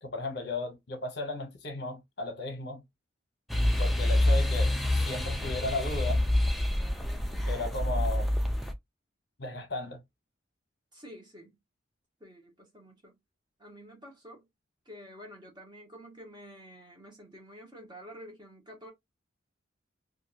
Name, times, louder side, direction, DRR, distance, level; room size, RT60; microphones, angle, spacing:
voice 1, 0.0-2.8 3.8-6.2 7.5-8.3 9.4-10.0, left 2 dB, 55° left, 0.9 m, -35 dB
sound 1, 3.5-8.7, left 1 dB, ahead, 0.3 m, -27 dB
voice 2, 10.9-11.6 12.2-13.1 13.6-14.5 14.8-18.9, equal, 20° right, 1.0 m, -49 dB
2.5 x 2.5 x 2.7 m
head